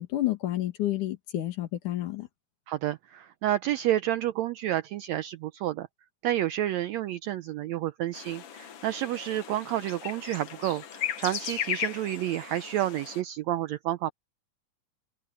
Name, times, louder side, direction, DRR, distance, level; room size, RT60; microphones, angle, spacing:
voice 1, 0.0-2.3, left 14 dB, 70° left, 3.2 m, -30 dB
voice 2, 2.7-5.9 6.2-14.1, right 13 dB, 85° right, 1.6 m, -30 dB
sound 1, 8.1-13.2, left 9 dB, 55° left, 1.9 m, -36 dB
omnidirectional pair, 3.7 m